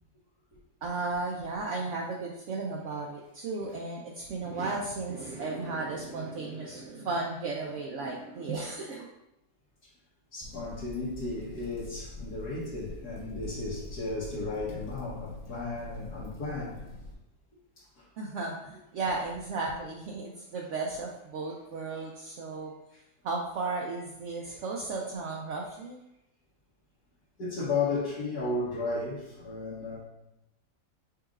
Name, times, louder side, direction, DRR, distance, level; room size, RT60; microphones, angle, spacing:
voice 1, 0.8-9.1 18.2-22.7 23.2-26.0, right 3 dB, 70° right, -1 dB, 0.7 m, -34 dB
voice 2, 10.3-16.8 17.8-18.0 22.9-23.0 24.3-24.6 27.4-30.0, left 3 dB, 70° left, -8 dB, 1.6 m, -34 dB
sound 1, 10.4-17.1, left 1 dB, 30° left, 0.9 m, -45 dB
5.8 x 3.7 x 2.4 m, 0.88 s
omnidirectional pair, 1.8 m